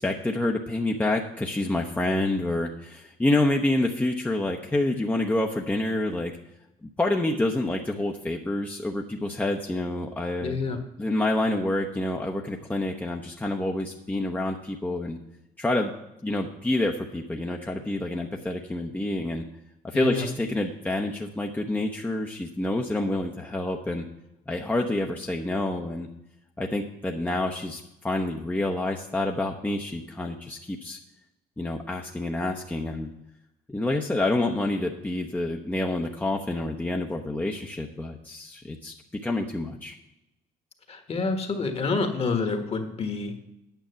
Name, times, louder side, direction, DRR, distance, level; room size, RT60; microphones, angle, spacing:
voice 1, 0.0-6.4 6.8-10.6 11.0-15.2 15.6-15.9 16.2-19.4 19.8-24.1 24.5-26.1 26.6-31.0 31.6-33.1 33.7-39.9, left 2 dB, 10° left, 1 dB, 0.8 m, -28 dB
voice 2, 10.4-10.8 19.9-20.3 40.9-43.4, left 4 dB, 35° left, 6 dB, 1.5 m, -28 dB
9.2 x 7.2 x 6.9 m, 0.88 s
cardioid pair, 110°, 17 cm